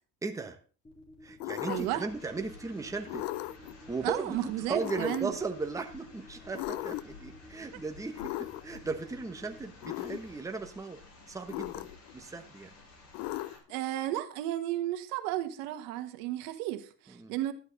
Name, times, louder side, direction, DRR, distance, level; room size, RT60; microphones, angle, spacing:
voice 1, 0.2-0.6 1.2-3.3 3.9-11.0 11.3-12.7 17.1-17.3, right 4 dB, 10° right, 1.1 m, -37 dB
sound 1, 0.8-9.6, left 1 dB, 15° left, 4.0 m, -53 dB
sound 2, 1.4-2.1 3.1-3.7 4.8-5.4 6.5-7.2 8.2-8.8 9.8-10.2 11.5-12.1 13.1-13.8, left 18 dB, 80° left, 0.6 m, -37 dB
sound 3, 1.7-13.6, left 3 dB, 45° left, 6.3 m, -53 dB
voice 2, 1.7-2.0 4.0-5.3 13.7-17.5, right 14 dB, 80° right, 1.6 m, -33 dB
12.5 x 10.5 x 4.0 m
cardioid pair, 140°, 36 cm